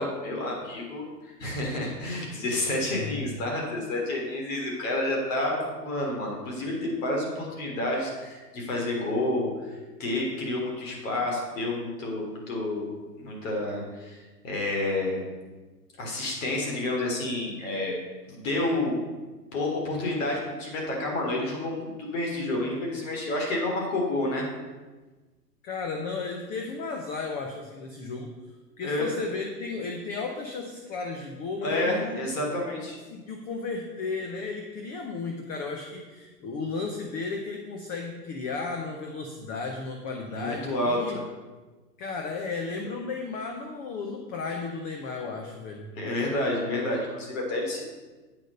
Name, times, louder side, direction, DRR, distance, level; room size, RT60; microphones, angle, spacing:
voice 1, 0.0-15.2 16.0-18.0 18.3-19.0 19.5-24.5 28.8-29.1 31.6-33.0 40.3-41.2 45.9-47.8, left 1 dB, 50° left, -1 dB, 3.4 m, -29 dB
voice 2, 25.6-28.3 28.8-32.3 33.1-41.2 42.0-45.9, left 4 dB, 20° left, 2 dB, 0.7 m, -34 dB
8.5 x 6.2 x 6.5 m, 1.2 s
hypercardioid pair, 120°, 49 cm